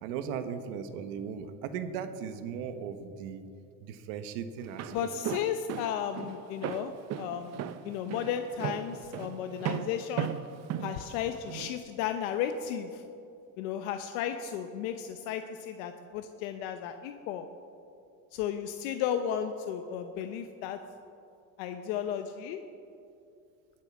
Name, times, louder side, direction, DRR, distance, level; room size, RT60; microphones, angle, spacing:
voice 1, 0.0-3.4 3.8-4.9, right 7 dB, 80° right, 9 dB, 1.3 m, -37 dB
Walk footsteps, 4.6-11.7, right 10 dB, 40° right, 0.6 m, -37 dB
voice 2, 4.9-10.4 10.8-13.0 13.6-17.5 18.3-20.8 21.6-22.6, left 9 dB, 80° left, 7 dB, 0.9 m, -34 dB
20.5 x 7.7 x 6.1 m, 2.5 s
cardioid pair, 140°, 41 cm